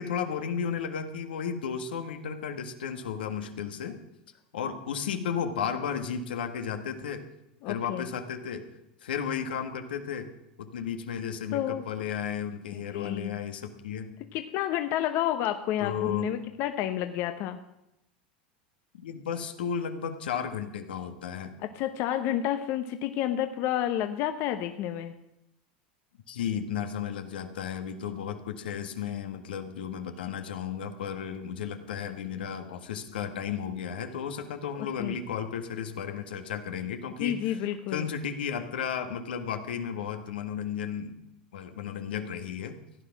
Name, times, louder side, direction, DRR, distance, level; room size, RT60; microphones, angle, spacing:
voice 1, 0.0-4.0 4.5-7.3 7.7-8.7 9.0-10.3 10.6-14.1 15.8-16.4 19.0-21.5 26.3-37.6 37.9-41.2 41.5-42.8, left 7 dB, 85° left, 7 dB, 1.7 m, -34 dB
voice 2, 7.6-8.0 11.5-11.8 12.9-13.3 14.3-17.6 21.6-25.1 34.8-35.2 37.2-38.1, left 11 dB, 55° left, 7 dB, 1.1 m, -30 dB
16.0 x 10.0 x 6.0 m, 0.86 s
hypercardioid pair, 100°, 5 cm